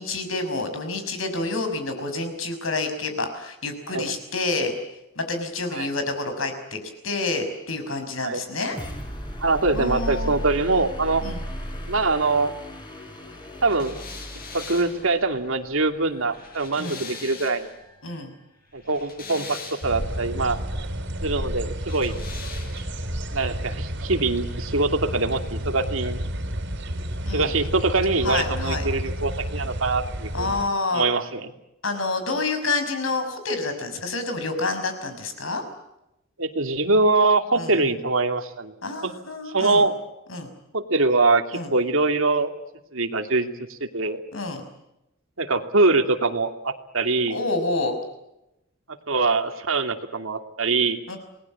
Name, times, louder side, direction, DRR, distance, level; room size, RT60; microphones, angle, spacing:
voice 1, 0.0-4.7 5.2-8.8 9.7-10.3 11.2-11.4 16.8-17.1 18.0-18.3 27.2-27.5 28.2-28.9 30.3-31.0 31.8-35.6 37.5-37.8 38.8-39.8 40.3-40.5 41.5-41.7 44.3-44.6 47.3-48.0 51.1-51.2, left 3 dB, 80° left, 7 dB, 5.8 m, -28 dB
sound 1, 8.5-18.2, equal, 25° left, 5.6 m, -37 dB
voice 2, 9.4-11.2 11.9-12.5 13.6-13.9 14.5-17.7 18.7-20.6 21.2-22.1 23.3-26.2 27.3-30.5 30.9-31.5 36.4-38.7 39.0-39.1 39.5-39.9 40.7-42.5 42.9-44.2 45.4-47.4 49.1-51.0, right 3 dB, 85° right, 6 dB, 2.6 m, -23 dB
sound 2, 13.7-17.8 18.7-20.2 21.8-23.1, left 4 dB, 50° left, 6.9 m, -41 dB
sound 3, 19.8-30.7, equal, 65° right, 3.5 m, -31 dB
28.5 x 20.0 x 8.6 m, 0.89 s
head